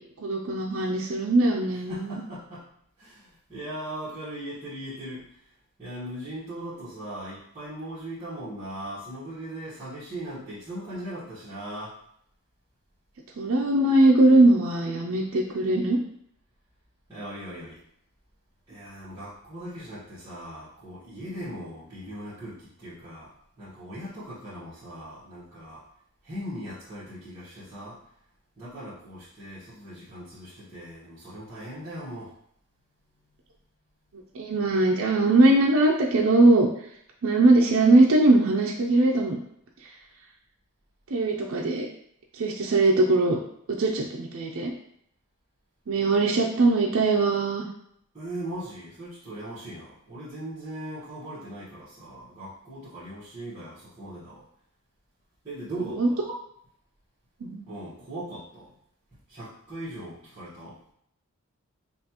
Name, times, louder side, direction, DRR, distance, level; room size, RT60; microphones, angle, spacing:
voice 1, 0.2-2.2 13.4-16.0 34.3-36.7 37.2-39.4 41.1-41.9 42.4-43.4 43.7-44.7 45.9-47.7 56.0-56.1 57.4-57.6, right 2 dB, 65° right, -1 dB, 0.5 m, -21 dB
voice 2, 1.9-2.6 3.0-5.2 5.8-11.9 17.1-17.8 18.7-23.3 23.6-25.8 26.2-28.0 28.6-32.3 48.1-54.4 55.4-56.2 57.7-58.7 59.3-60.8, right 1 dB, 20° right, -15 dB, 1.3 m, -39 dB
5.4 x 2.4 x 2.9 m, 0.71 s
head